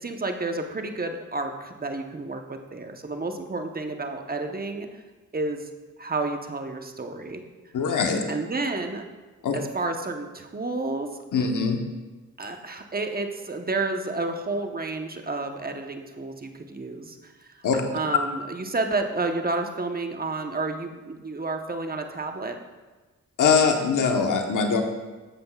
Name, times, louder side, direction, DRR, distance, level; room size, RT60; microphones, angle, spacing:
voice 1, 0.0-4.9 5.3-5.7 6.0-7.4 8.3-9.0 9.5-11.1 12.4-22.6, right 3 dB, 30° right, 5 dB, 1.0 m, -30 dB
voice 2, 7.7-8.2 9.4-9.6 11.3-11.8 17.6-17.8 23.4-24.8, left 5 dB, 70° left, 4 dB, 1.1 m, -22 dB
12.5 x 7.6 x 2.4 m, 1.2 s
cardioid pair, 55°, 32 cm